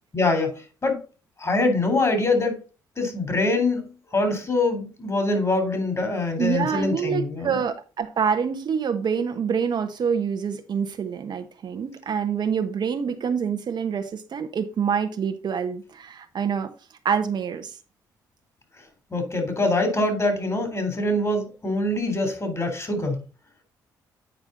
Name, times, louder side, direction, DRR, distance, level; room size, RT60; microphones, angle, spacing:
voice 1, 0.1-1.0 1.4-2.6 3.0-7.6 19.1-23.2, left 2 dB, 35° left, 3.5 m, -24 dB
voice 2, 6.4-16.7 17.0-17.7, right 7 dB, 55° right, 1.0 m, -26 dB
9.0 x 4.8 x 3.9 m
hypercardioid pair, 50°, 9 cm